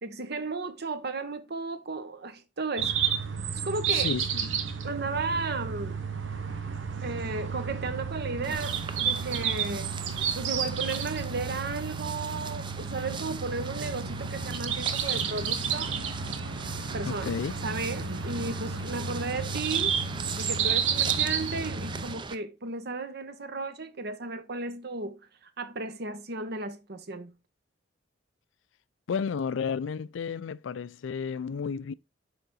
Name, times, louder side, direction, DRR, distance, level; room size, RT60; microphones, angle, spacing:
voice 1, 0.0-3.0 3.6-4.1 4.8-6.0 7.0-9.9 10.3-16.0 16.9-17.3 17.6-20.0 20.4-27.3, right 3 dB, 60° right, 1.0 m, -34 dB
sound 1, 2.8-22.1, right 6 dB, 85° right, 1.0 m, -31 dB
voice 2, 3.9-4.5 17.1-17.5 29.1-31.9, left 6 dB, 80° left, 0.4 m, -32 dB
sound 2, 8.4-22.4, right 4 dB, 25° right, 0.5 m, -40 dB
6.8 x 5.0 x 3.8 m
head